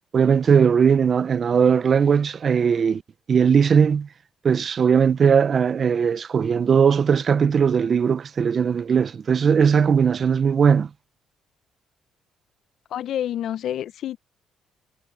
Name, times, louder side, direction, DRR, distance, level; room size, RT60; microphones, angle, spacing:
voice 1, 0.1-3.0 3.3-4.1 4.4-10.9, right 6 dB, 50° right, 0.8 m, -19 dB
voice 2, 12.9-14.2, left 11 dB, 70° left, 1.0 m, -28 dB
supercardioid pair, 55°, 0 cm